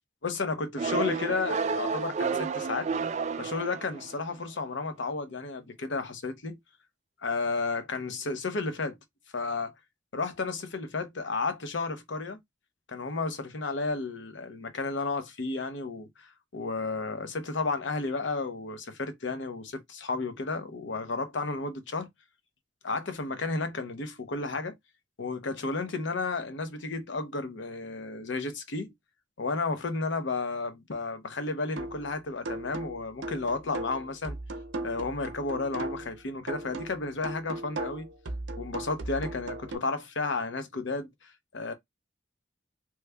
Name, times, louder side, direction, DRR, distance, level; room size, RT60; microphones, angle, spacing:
voice 1, 0.2-2.9 3.4-6.6 7.2-9.0 9.3-9.7 10.1-12.4 12.9-22.1 22.8-24.7 25.2-28.9 29.4-34.4 34.8-38.1 38.6-41.7, left 3 dB, 75° left, 0.7 m, -32 dB
sound 1, 0.8-4.3, right 5 dB, 40° right, 0.3 m, -31 dB
sound 2, 31.8-32.1 32.4-36.1 36.5-39.8, right 2 dB, 80° right, 0.7 m, -37 dB
3.1 x 2.2 x 3.3 m
head